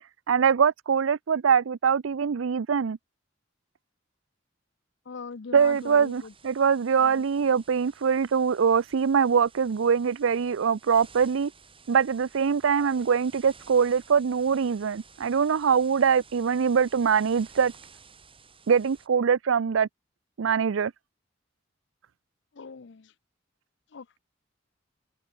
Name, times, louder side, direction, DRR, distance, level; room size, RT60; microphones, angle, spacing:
voice 1, 0.3-3.0 5.5-11.5 11.9-17.7 18.7-19.9 20.4-20.9, right 6 dB, 85° right, 0.5 m, -23 dB
voice 2, 5.1-6.3 7.0-7.2 22.5-23.1 23.9-24.2, left 5 dB, 65° left, 0.6 m, -41 dB
sound 1, 5.6-19.1, right 5 dB, 30° right, 5.8 m, -54 dB
head